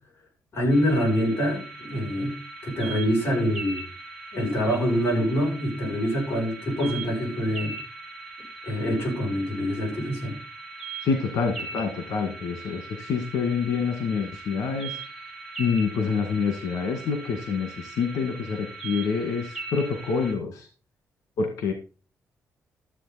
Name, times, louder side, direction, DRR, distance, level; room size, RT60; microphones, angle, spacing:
voice 1, 0.5-3.8 4.3-7.8 8.7-10.4, equal, 45° left, 7.7 m, -25 dB
sound 1, 0.7-20.3, right 3 dB, 10° right, 3.5 m, -40 dB
voice 2, 11.0-15.0 15.6-20.7 21.4-21.7, left 5 dB, 90° left, 2.0 m, -27 dB
13.5 x 8.2 x 4.2 m
wide cardioid pair, 160°, 6 cm